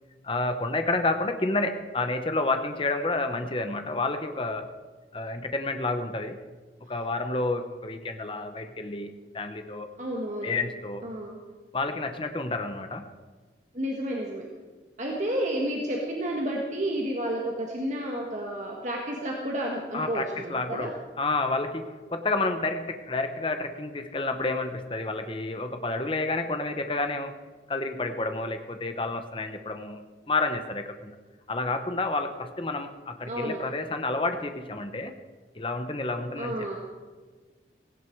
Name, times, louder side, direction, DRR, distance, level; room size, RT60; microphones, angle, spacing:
voice 1, 0.2-4.8 5.1-6.4 6.9-9.9 10.4-11.0 11.7-13.1 19.9-20.9 21.2-27.4 27.7-30.0 30.3-31.2 31.5-35.1 35.5-36.6, left 2 dB, 30° left, 7 dB, 1.0 m, -30 dB
voice 2, 10.0-10.5 11.0-11.4 13.7-14.5 15.0-20.9 33.3-33.6 36.4-36.8, right 1 dB, 45° right, -1 dB, 1.8 m, -31 dB
17.0 x 16.5 x 4.7 m, 1.4 s
head